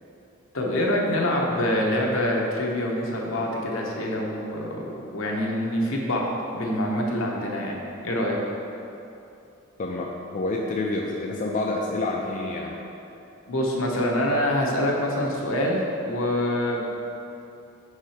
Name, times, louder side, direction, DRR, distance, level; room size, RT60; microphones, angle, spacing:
voice 1, 0.5-8.4 13.5-16.9, left 1 dB, 70° left, -1 dB, 0.9 m, -25 dB
voice 2, 9.8-12.7, left 2 dB, 40° left, -1 dB, 0.4 m, -28 dB
5.5 x 4.8 x 4.3 m, 2.8 s
head